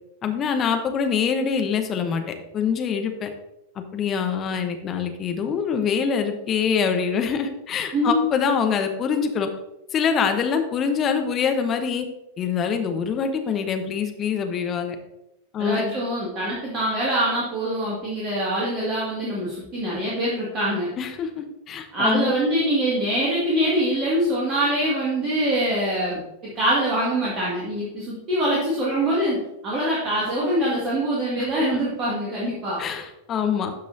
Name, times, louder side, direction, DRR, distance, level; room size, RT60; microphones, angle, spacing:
voice 1, 0.2-2.2 2.5-3.3 3.9-9.5 9.9-12.1 12.4-15.0 15.5-16.0 21.0-22.4 31.4-31.8 32.8-33.7, left 6 dB, 30° left, 6 dB, 0.9 m, -24 dB
voice 2, 7.9-8.3 15.6-20.9 21.9-26.2 26.6-32.8, right 1 dB, 30° right, -6 dB, 2.1 m, -24 dB
12.5 x 5.3 x 2.7 m, 0.90 s
figure-of-eight pair, 90°, 0 cm